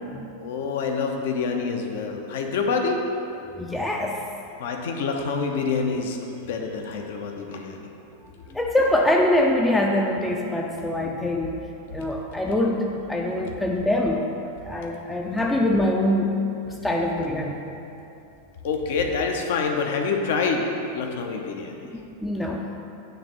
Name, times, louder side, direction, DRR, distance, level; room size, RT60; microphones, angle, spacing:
voice 1, 0.4-3.0 4.6-6.2 6.5-7.9 18.6-21.9, left 4 dB, 55° left, 3 dB, 0.8 m, -26 dB
voice 2, 3.6-4.2 8.5-11.6 11.9-16.4 16.8-17.6 21.9-22.6, left 1 dB, 5° left, -1 dB, 0.5 m, -24 dB
9.2 x 3.4 x 6.4 m, 2.8 s
figure-of-eight pair, 90°, 0 cm